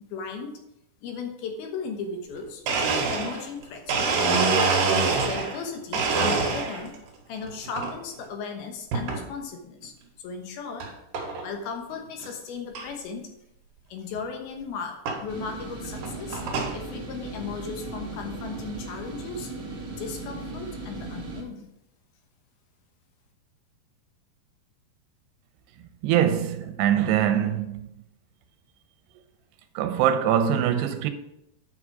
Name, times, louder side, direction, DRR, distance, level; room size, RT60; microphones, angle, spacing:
voice 1, 0.1-0.6 1.0-4.8 5.2-7.0 7.3-9.9 10.2-10.9 11.4-13.3 13.9-16.4 16.7-19.5 20.0-21.7, left 5 dB, 75° left, 2.8 m, -36 dB
Domestic sounds home sounds, 2.3-2.4 2.7-5.6 5.9-7.0 7.4-7.9 8.9-9.2 9.8-9.9 10.8-10.9 11.1-11.5 11.9-12.0 12.2-12.3 12.7-12.8 14.2-14.3 15.1-15.2 15.8-16.8, right 4 dB, 60° right, 3.1 m, -25 dB
sound 1, 15.3-21.4, right 2 dB, 35° right, 1.5 m, -37 dB
voice 2, 26.0-27.9 29.8-31.1, right 10 dB, 90° right, 2.9 m, -23 dB
9.4 x 5.8 x 4.8 m
omnidirectional pair, 4.7 m